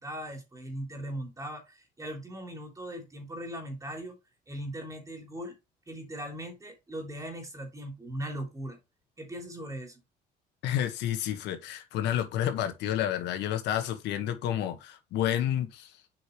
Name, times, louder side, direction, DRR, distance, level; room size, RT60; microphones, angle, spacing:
voice 1, 0.0-4.1 4.5-5.6 5.9-8.8 9.2-10.0, right 1 dB, 20° right, 3.2 m, -39 dB
voice 2, 10.6-15.9, left 11 dB, 85° left, 1.6 m, -30 dB
7.8 x 5.5 x 3.2 m
cardioid pair, 110°, 17 cm